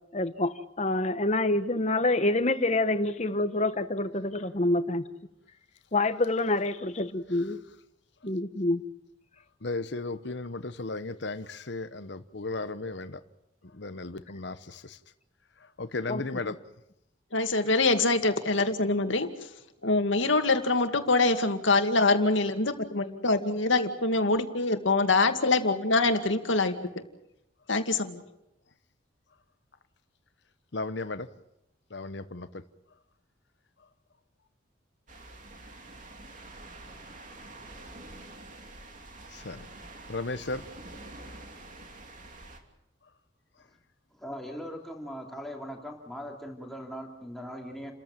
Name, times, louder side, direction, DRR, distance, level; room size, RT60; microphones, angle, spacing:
voice 1, 0.1-5.0 5.9-7.6 8.2-8.9 16.1-16.2, left 2 dB, 35° left, 1.3 m, -27 dB
voice 2, 9.6-13.2 13.6-15.0 15.6-16.6 30.7-31.3 31.9-32.6 39.3-39.7 40.1-40.7, left 3 dB, 60° left, 1.0 m, -35 dB
voice 3, 17.3-19.3 19.8-26.7 27.7-28.2, left 3 dB, 80° left, 2.3 m, -24 dB
sound 1, 35.1-42.6, right 2 dB, 40° right, 3.0 m, -47 dB
voice 4, 44.1-47.9, equal, ahead, 3.0 m, -40 dB
30.0 x 14.5 x 9.1 m
head